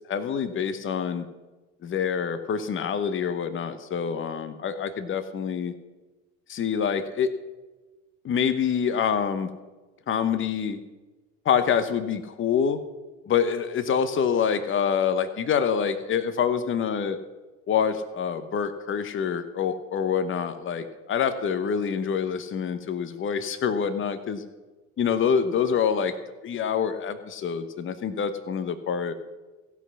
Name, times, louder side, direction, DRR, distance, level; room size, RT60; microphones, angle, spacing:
voice 1, 0.1-1.3 1.8-5.7 6.5-7.3 8.2-9.5 10.1-10.8 11.4-12.8 13.3-17.2 17.7-24.4 25.0-26.1 26.4-29.1, left 7 dB, 30° left, 10 dB, 1.0 m, -26 dB
15.5 x 5.8 x 6.2 m, 1.2 s
hypercardioid pair, 70°, 40 cm